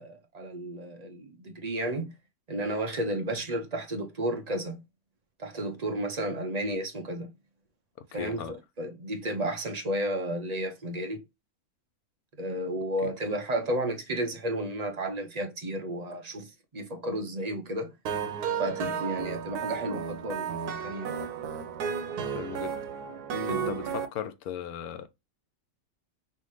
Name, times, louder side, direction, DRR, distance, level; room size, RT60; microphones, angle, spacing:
voice 1, 0.0-2.1 2.5-4.8 5.4-7.3 8.1-11.2 12.4-17.9 18.6-21.1 23.3-23.8, right 1 dB, 35° right, 0.8 m, -32 dB
voice 2, 8.1-8.5 13.0-13.1 22.3-22.8 23.4-25.1, left 9 dB, 75° left, 1.2 m, -37 dB
sound 1, 18.1-24.1, right 7 dB, 80° right, 1.2 m, -33 dB
5.7 x 2.8 x 3.2 m
omnidirectional pair, 1.6 m